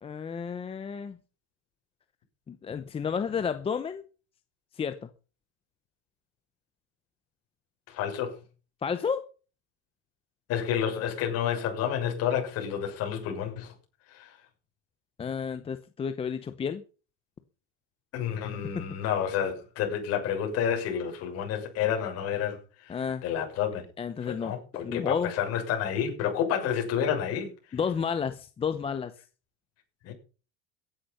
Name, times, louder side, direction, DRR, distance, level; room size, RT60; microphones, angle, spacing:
voice 1, 0.0-1.2 2.5-4.1 4.8-5.1 8.8-9.3 15.2-16.8 22.9-23.2 24.0-24.6 24.8-25.3 27.7-29.1, left 6 dB, 20° left, 0.8 m, -31 dB
voice 2, 7.9-8.4 10.5-13.7 14.1-14.4 18.1-23.8 24.2-27.8 30.0-30.1, left 8 dB, 50° left, 6.7 m, -30 dB
16.0 x 10.5 x 5.6 m
cardioid pair, 160°, 32 cm